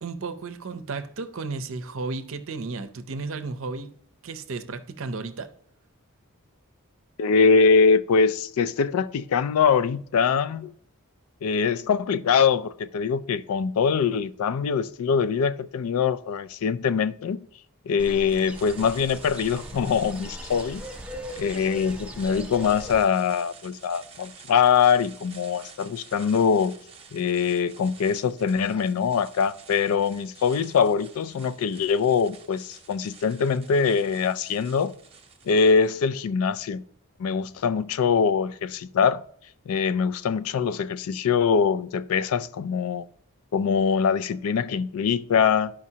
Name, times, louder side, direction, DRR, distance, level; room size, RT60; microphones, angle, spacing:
voice 1, 0.0-3.9 4.2-5.5, right 3 dB, 60° right, 0.6 m, -33 dB
voice 2, 7.2-10.7 11.4-17.4 17.9-20.8 21.4-26.7 27.1-34.9 35.5-36.8 37.2-39.2 39.7-43.1 43.5-45.7, left 6 dB, 75° left, 0.4 m, -23 dB
sound 1, 18.0-23.0, equal, 5° right, 0.4 m, -40 dB
sound 2, 18.3-36.0, right 6 dB, 25° right, 0.8 m, -49 dB
12.0 x 5.1 x 2.8 m
head